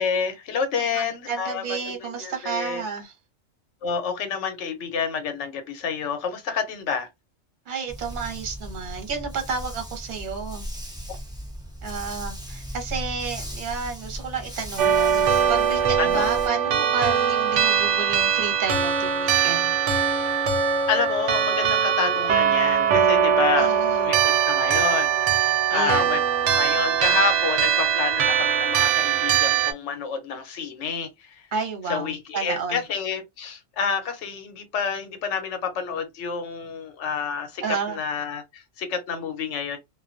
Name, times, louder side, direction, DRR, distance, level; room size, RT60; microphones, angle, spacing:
voice 1, 0.0-2.8 3.8-7.1 11.1-11.2 16.0-16.3 20.9-23.7 24.0-31.5 31.9-39.8, left 6 dB, 75° left, 1.0 m, -29 dB
voice 2, 0.8-3.1 7.7-10.7 11.8-19.7 23.6-24.1 25.7-26.1 31.5-32.8 37.6-38.0, right 5 dB, 45° right, 0.8 m, -31 dB
Dog, 7.9-16.5, equal, 5° right, 0.4 m, -37 dB
sound 1, 14.8-29.7, right 8 dB, 75° right, 0.9 m, -21 dB
2.2 x 2.2 x 2.5 m
omnidirectional pair, 1.2 m